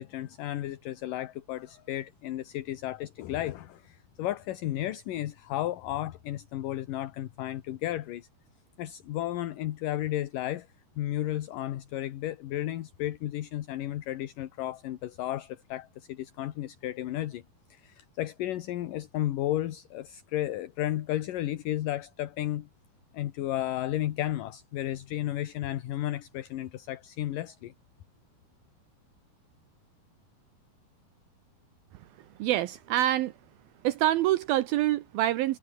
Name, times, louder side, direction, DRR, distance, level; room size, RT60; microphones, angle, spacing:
voice 1, 0.0-8.3 8.8-10.7 11.0-17.4 17.7-22.7 23.1-27.7, left 13 dB, 65° left, 2.5 m, -33 dB
voice 2, 32.0-33.4 33.8-35.6, right 14 dB, 75° right, 2.5 m, -26 dB
omnidirectional pair, 4.6 m